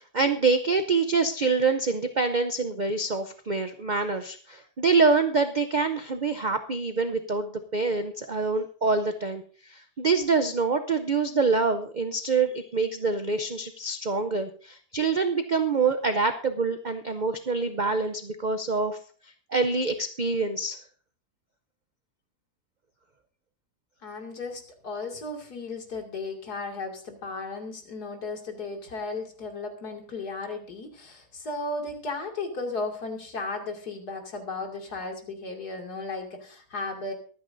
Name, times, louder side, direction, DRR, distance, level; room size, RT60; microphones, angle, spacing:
voice 1, 0.0-19.0 19.5-20.8, right 4 dB, 60° right, 8 dB, 0.4 m, -26 dB
voice 2, 24.0-37.1, left 3 dB, 70° left, 2 dB, 2.9 m, -35 dB
23.5 x 9.2 x 2.6 m, 0.42 s
omnidirectional pair, 1.8 m